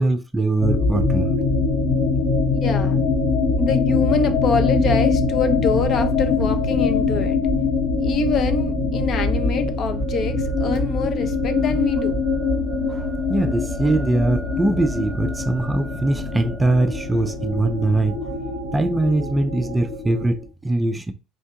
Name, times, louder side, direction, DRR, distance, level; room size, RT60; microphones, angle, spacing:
voice 1, 0.0-1.3 12.9-18.3 18.7-21.1, right 2 dB, 15° right, 0.4 m, -22 dB
sound 1, 0.6-20.4, left 4 dB, 85° left, 1.6 m, -23 dB
voice 2, 2.5-3.0 3.6-7.4 8.0-12.2, left 4 dB, 50° left, 0.6 m, -25 dB
4.4 x 2.3 x 2.8 m
supercardioid pair, 95°, 0 cm